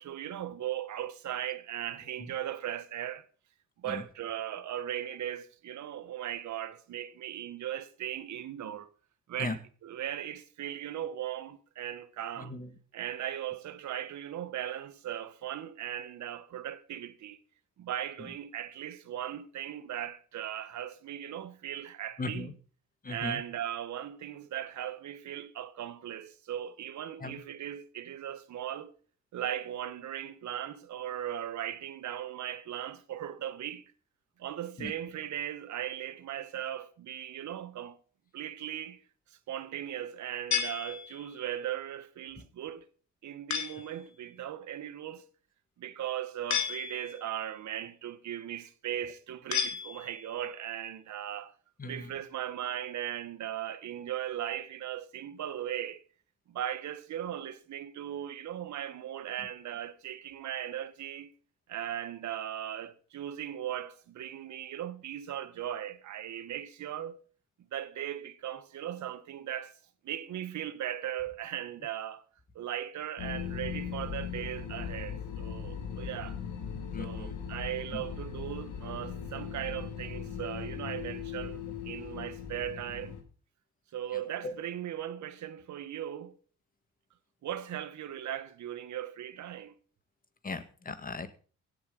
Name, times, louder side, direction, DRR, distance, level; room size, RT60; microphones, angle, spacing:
voice 1, 0.0-3.2 3.8-8.9 9.3-12.5 12.9-17.4 17.8-22.6 23.1-28.9 29.3-33.8 34.4-38.0 38.3-39.0 39.3-42.8 43.2-45.2 45.8-51.5 51.8-56.0 56.5-61.3 61.7-67.2 67.6-69.7 70.0-72.2 72.5-76.4 77.0-83.2 83.9-86.4 87.4-89.7, right 11 dB, 70° right, 1.6 m, -38 dB
voice 2, 12.4-12.7 22.2-22.5 23.0-23.4 27.2-27.4 34.8-34.9 51.8-52.1 76.9-77.3 77.9-78.0 84.4-84.5 90.4-91.3, left 3 dB, 30° left, 1.9 m, -37 dB
sound 1, 40.5-41.4 43.5-44.0 46.5-47.3 49.5-50.4, left 8 dB, 65° left, 2.4 m, -33 dB
sound 2, 73.2-83.2, left 7 dB, 80° left, 3.2 m, -39 dB
16.5 x 7.9 x 5.4 m
cardioid pair, 90°, 30 cm